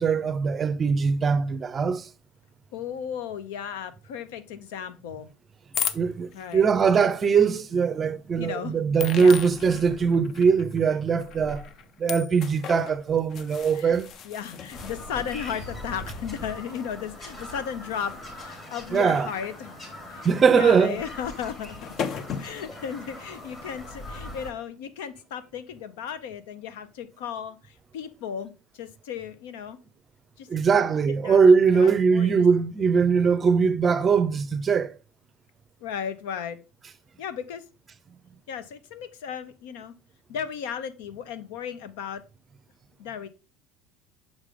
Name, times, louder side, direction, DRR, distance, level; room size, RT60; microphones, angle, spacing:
voice 1, 0.0-2.1 5.9-11.7 12.0-14.1 18.9-19.3 20.2-21.0 30.5-34.9, right 5 dB, 25° right, 0.5 m, -21 dB
voice 2, 2.7-5.3 6.3-6.7 8.4-8.8 9.2-9.4 13.7-14.0 14.2-19.8 20.1-21.8 22.4-29.8 30.4-30.5 30.7-31.4 31.7-32.4 35.8-36.6 37.2-37.6 38.5-39.9 40.3-42.2 43.0-43.3, left 8 dB, 85° left, 0.8 m, -35 dB
sound 1, 5.7-6.6 7.5-7.6 9.0-19.5 19.9-20.1 21.4-21.5 21.7-22.7, left 7 dB, 40° left, 0.5 m, -37 dB
Bird vocalization bird call bird song, 14.7-24.5, left 1 dB, 25° left, 2.2 m, -41 dB
6.4 x 4.9 x 3.6 m
supercardioid pair, 135°, 0 cm